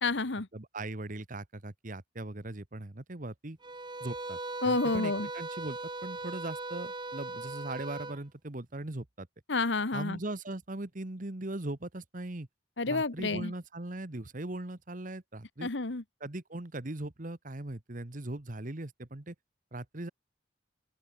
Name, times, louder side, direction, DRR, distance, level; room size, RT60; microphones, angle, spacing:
voice 1, 0.0-0.5 4.6-5.3 9.5-10.2 12.8-13.5 15.6-16.0, left 3 dB, 75° left, 1.4 m, -29 dB
voice 2, 0.5-3.6 4.0-4.4 4.6-9.3 9.9-12.5 12.9-15.7 16.2-19.3 19.7-20.1, right 2 dB, 45° right, 1.4 m, -39 dB
sound 1, 3.6-8.2, right 3 dB, 25° right, 3.2 m, -39 dB
open air
head